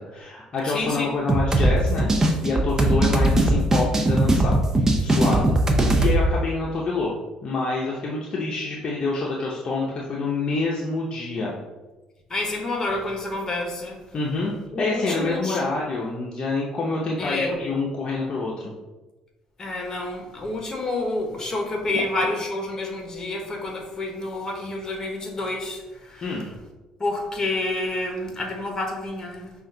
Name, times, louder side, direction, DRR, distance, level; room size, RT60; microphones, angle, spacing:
voice 1, 0.0-2.1 2.4-5.6 6.0-7.1 7.4-11.6 14.1-14.5 14.8-18.7 26.2-26.5, left 3 dB, 45° left, -3 dB, 0.8 m, -27 dB
voice 2, 0.7-1.1 12.3-14.0 14.7-15.6 17.2-17.6 19.6-26.3 27.0-29.5, left 2 dB, 25° left, 1 dB, 1.2 m, -29 dB
sound 1, 1.3-6.2, right 1 dB, 25° right, 0.7 m, -20 dB
5.6 x 2.5 x 3.8 m, 1.1 s
cardioid pair, 90°, 2 cm